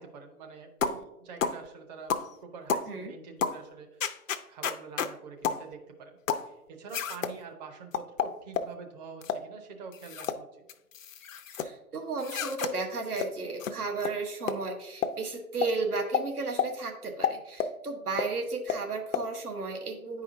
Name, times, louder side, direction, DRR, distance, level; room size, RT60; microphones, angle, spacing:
voice 1, 0.0-2.1 2.4-4.2 4.5-6.2 6.4-10.5, right 5 dB, 30° right, 4 dB, 0.8 m, -46 dB
sound 1, 0.8-1.0 1.4-1.6 2.1-2.3 2.7-2.9 3.4-3.6 4.0-5.1 5.4-5.6 6.3-6.5 6.9-7.3 7.9-8.7 9.2-9.4 9.9-10.4 10.7-11.7 12.2-12.7 13.2-13.3 13.6-13.7 14.0-14.1 14.5-14.6 15.0-15.2 15.6-15.7 16.1-16.3 16.6-16.7 17.2-17.8 18.2-18.3 18.7-18.8 19.1-19.3, left 7 dB, 60° left, 0.6 m, -30 dB
voice 2, 11.6-20.2, right 3 dB, 75° right, 2 dB, 1.3 m, -34 dB
9.7 x 4.8 x 2.7 m, 0.92 s
figure-of-eight pair, 125°, 45 cm